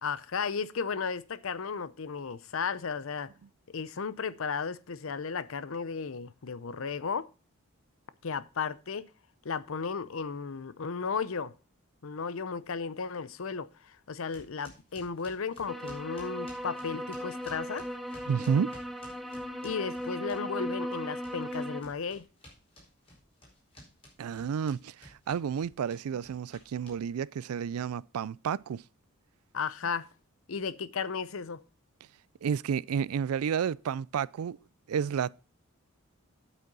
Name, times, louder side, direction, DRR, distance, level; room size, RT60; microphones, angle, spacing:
voice 1, 0.0-3.3 3.7-7.3 8.2-9.1 9.4-11.5 12.0-17.9 19.6-22.3 29.5-30.1 30.5-31.6, left 5 dB, 65° left, 0.6 m, -34 dB
sound 1, 14.3-20.6 20.9-27.3, left 1 dB, 25° left, 4.6 m, -54 dB
sound 2, 15.7-21.8, equal, ahead, 0.9 m, -37 dB
voice 2, 18.3-18.7 24.2-28.8 32.4-34.6 34.9-35.4, right 7 dB, 85° right, 0.4 m, -31 dB
9.2 x 8.4 x 4.0 m
head